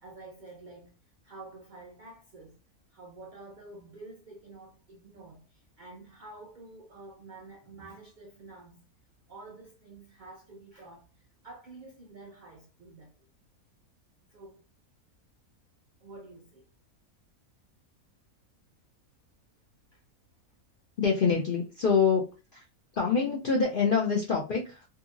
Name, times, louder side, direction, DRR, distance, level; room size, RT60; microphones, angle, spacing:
voice 1, 0.0-2.6 2.9-8.8 9.3-13.3 14.3-14.6 16.0-16.7 19.9-20.0, right 2 dB, 80° right, 0.4 m, -49 dB
voice 2, 21.0-22.2 22.5-22.7 22.9-24.9, left 5 dB, 65° left, 0.5 m, -25 dB
2.7 x 2.7 x 2.3 m
omnidirectional pair, 1.5 m